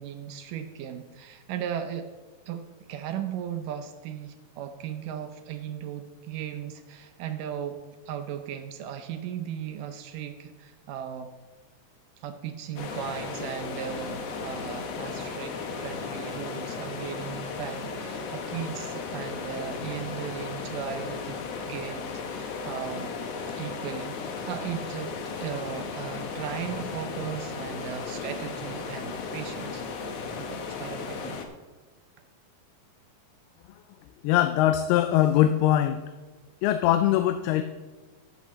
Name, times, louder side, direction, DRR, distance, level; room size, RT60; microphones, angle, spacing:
voice 1, 0.0-2.1 2.5-7.8 8.1-11.3 12.2-21.4 21.6-23.2 23.5-29.8 30.4-31.4, right 9 dB, 75° right, 8 dB, 2.0 m, -37 dB
sound 1, 12.8-31.5, left 5 dB, 70° left, 1.6 m, -35 dB
voice 2, 34.2-36.0 36.6-37.6, left 12 dB, 90° left, 9 dB, 2.6 m, -22 dB
14.0 x 10.5 x 3.1 m, 1.3 s
omnidirectional pair, 4.4 m